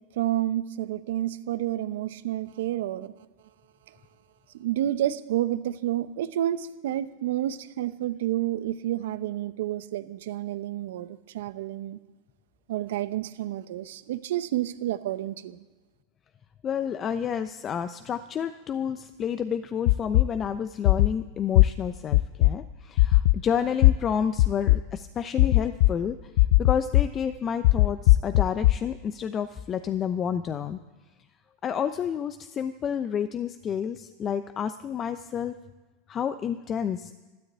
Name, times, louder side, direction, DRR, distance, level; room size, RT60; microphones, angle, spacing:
voice 1, 0.2-3.1 4.5-12.0 12.7-15.6, right 13 dB, 75° right, 13 dB, 0.9 m, -30 dB
voice 2, 16.6-26.3 26.6-30.8 31.6-35.6 36.1-37.2, left 8 dB, 35° left, 9 dB, 0.8 m, -30 dB
sound 1, 19.9-20.2 20.8-21.1 21.5-21.7 22.1-22.5 23.0-23.3 23.8-23.9 24.4-24.8 25.4-25.9 26.4-27.0 27.6-28.7, left 19 dB, 70° left, 0.5 m, -17 dB
13.0 x 12.0 x 8.3 m, 1.2 s
hypercardioid pair, 100°, 0 cm